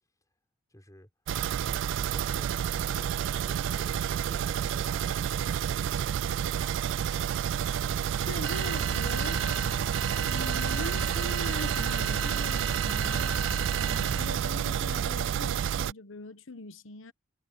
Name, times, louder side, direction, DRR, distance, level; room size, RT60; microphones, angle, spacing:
voice 1, 0.7-1.1 1.5-5.6 6.1-6.5 8.0-9.6, left 1 dB, 15° left, 5.0 m, -54 dB
sound 1, 1.3-15.9, right 9 dB, 65° right, 0.3 m, -30 dB
voice 2, 8.3-9.4 10.2-13.5 13.8-17.1, left 2 dB, 70° left, 1.2 m, -41 dB
sound 2, 8.4-14.6, right 4 dB, 85° right, 1.8 m, -34 dB
head